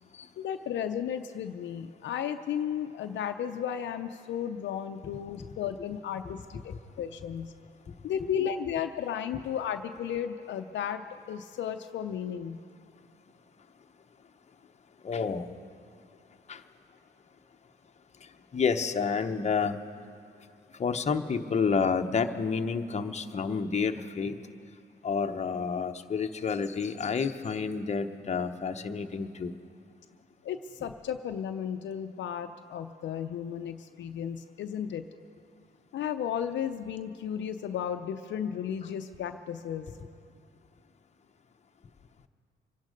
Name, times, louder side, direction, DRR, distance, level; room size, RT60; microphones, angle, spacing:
voice 1, 0.4-7.5 8.0-12.6 30.4-35.1 35.9-39.9, left 8 dB, 65° left, 7 dB, 0.6 m, -34 dB
voice 2, 15.0-15.5 16.5-16.6 18.5-19.8 20.7-24.4 25.0-29.5, left 5 dB, 35° left, 6 dB, 0.9 m, -29 dB
24.5 x 10.5 x 5.2 m, 2.5 s
cardioid pair, 90°, 20 cm